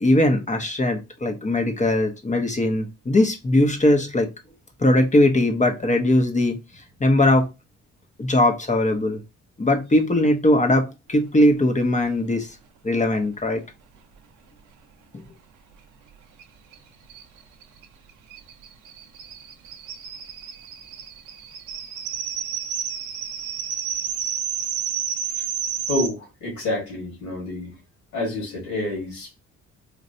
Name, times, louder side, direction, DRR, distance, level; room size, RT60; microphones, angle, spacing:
voice 1, 0.0-4.3 4.8-7.5 8.2-9.2 9.6-12.6 12.8-13.6 15.1-15.2, left 1 dB, 25° left, 0.8 m, -20 dB
sound 1, 16.4-16.5 16.7-16.8 17.1-26.1, right 8 dB, 85° right, 0.6 m, -31 dB
voice 2, 25.9-27.7 28.1-29.4, left 2 dB, 85° left, 1.8 m, -28 dB
3.2 x 2.5 x 2.6 m
cardioid pair, 70°, 30 cm